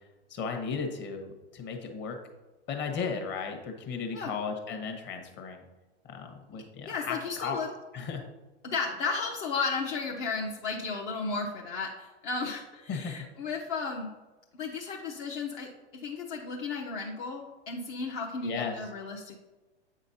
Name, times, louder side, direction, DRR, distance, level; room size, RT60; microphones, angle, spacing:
voice 1, 0.3-2.2 2.7-5.6 6.1-7.6 7.9-8.2 12.9-13.1 18.4-18.8, left 5 dB, 35° left, 4 dB, 1.2 m, -35 dB
voice 2, 6.8-7.7 8.6-14.1 14.5-15.7 16.0-19.4, left 4 dB, 50° left, -1 dB, 0.9 m, -34 dB
8.1 x 5.2 x 2.7 m, 1.2 s
hypercardioid pair, 115°, 33 cm